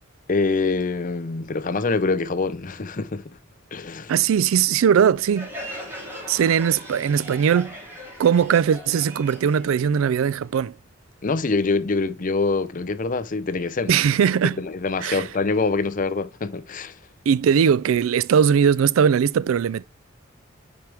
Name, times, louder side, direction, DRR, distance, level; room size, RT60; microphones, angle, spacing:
voice 1, 0.3-3.2 3.7-4.1 11.2-14.0 14.6-16.9, left 3 dB, 40° left, 0.6 m, -25 dB
voice 2, 4.1-5.5 6.3-7.7 8.2-10.7 13.9-14.6 15.0-15.2 17.3-19.8, right 7 dB, 85° right, 0.3 m, -19 dB
Crowd, 5.2-10.6, equal, 10° right, 3.3 m, -39 dB
10.5 x 4.6 x 3.4 m
head